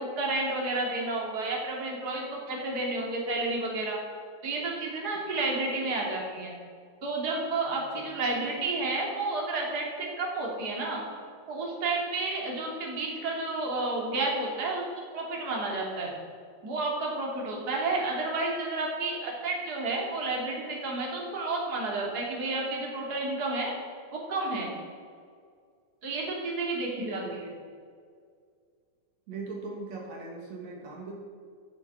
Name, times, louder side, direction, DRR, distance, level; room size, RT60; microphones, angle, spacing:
voice 1, 0.0-4.0 4.4-6.5 7.0-11.0 11.5-14.8 15.1-16.1 16.6-23.7 24.1-24.7 26.0-27.4, right 2 dB, 35° right, -2 dB, 3.2 m, -31 dB
voice 2, 27.0-27.6 29.3-31.1, right 3 dB, 65° right, -1 dB, 3.1 m, -40 dB
14.0 x 9.1 x 7.0 m, 2.1 s
omnidirectional pair, 3.3 m